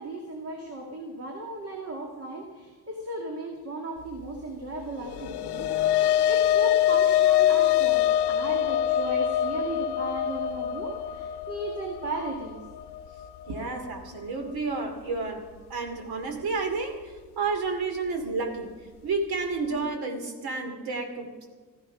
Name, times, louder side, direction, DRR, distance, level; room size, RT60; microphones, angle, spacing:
voice 1, 0.0-12.6 13.5-13.7, right 1 dB, 40° right, 1 dB, 1.9 m, -36 dB
sound 1, 5.1-13.6, left 11 dB, 90° left, 0.7 m, -24 dB
voice 2, 13.5-15.4 15.7-18.7 19.0-21.5, right 3 dB, 70° right, 5 dB, 2.8 m, -31 dB
15.0 x 14.5 x 5.8 m, 1.3 s
wide cardioid pair, 180°, 39 cm